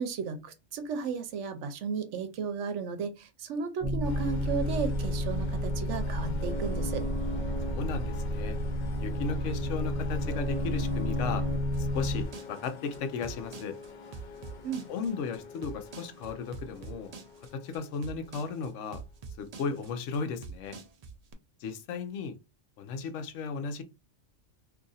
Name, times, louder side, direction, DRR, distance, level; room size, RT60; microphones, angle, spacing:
voice 1, 0.0-7.0 14.6-14.9, right 6 dB, 70° right, 0.9 m, -34 dB
sound 1, 3.8-12.3, equal, 35° right, 0.6 m, -31 dB
sound 2, 4.0-19.2, left 5 dB, 85° left, 0.4 m, -46 dB
voice 2, 7.7-8.6 9.0-11.4 11.8-13.7 14.9-17.1 17.5-19.0 19.4-20.8 21.6-22.3 22.8-23.8, left 5 dB, 70° left, 0.9 m, -35 dB
sound 3, 11.7-21.3, right 5 dB, 85° right, 0.3 m, -44 dB
2.8 x 2.5 x 3.9 m
omnidirectional pair, 1.4 m